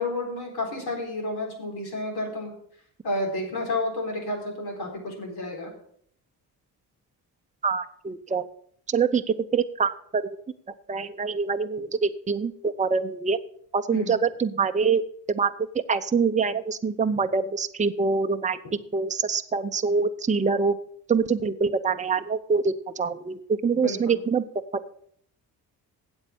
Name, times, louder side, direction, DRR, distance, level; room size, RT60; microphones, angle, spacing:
voice 1, 0.0-2.5 3.0-5.7 13.9-14.2 23.8-24.2, left 2 dB, 65° left, 1 dB, 4.1 m, -30 dB
voice 2, 7.6-8.4 8.9-10.4 10.9-13.4 13.7-15.0 15.3-15.5 15.9-18.6 18.9-20.8 21.1-24.4, right 5 dB, 15° right, 8 dB, 0.7 m, -25 dB
8.2 x 8.0 x 7.1 m, 0.63 s
supercardioid pair, 65°, 42 cm